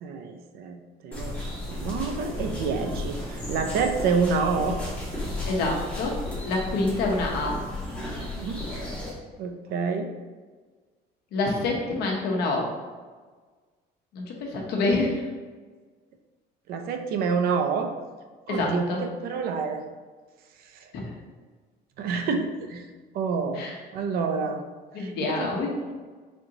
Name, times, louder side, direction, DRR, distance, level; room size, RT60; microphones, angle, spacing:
voice 1, 0.0-1.4 1.7-4.8 8.3-8.6 9.4-10.1 16.7-17.9 18.5-19.8 20.7-20.9 22.0-22.8 23.1-23.6 23.9-24.6 25.0-25.6, right 5 dB, 65° right, 5 dB, 0.5 m, -28 dB
sound 1, 1.1-9.1, left 1 dB, 10° left, 1.3 m, -34 dB
voice 2, 5.4-7.6 11.3-12.7 14.1-15.2 18.5-19.0 20.9-21.1 23.5-23.8 24.9-25.7, left 2 dB, 70° left, -1 dB, 1.0 m, -27 dB
4.3 x 3.7 x 2.9 m, 1.4 s
cardioid pair, 170°, 17 cm